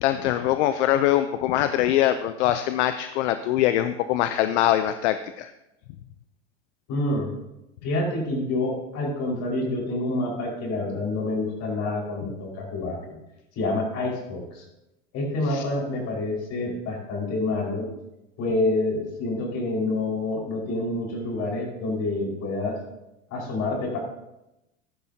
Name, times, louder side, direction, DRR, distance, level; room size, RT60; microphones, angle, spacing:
voice 1, 0.0-5.5 15.5-15.6, left 12 dB, 65° left, 11 dB, 0.7 m, -23 dB
voice 2, 6.9-7.4 7.8-13.2 13.5-14.6 15.1-17.9 18.4-22.8 23.3-24.0, left 2 dB, 45° left, -1 dB, 5.1 m, -27 dB
14.0 x 12.0 x 2.8 m, 0.92 s
hypercardioid pair, 110°, 37 cm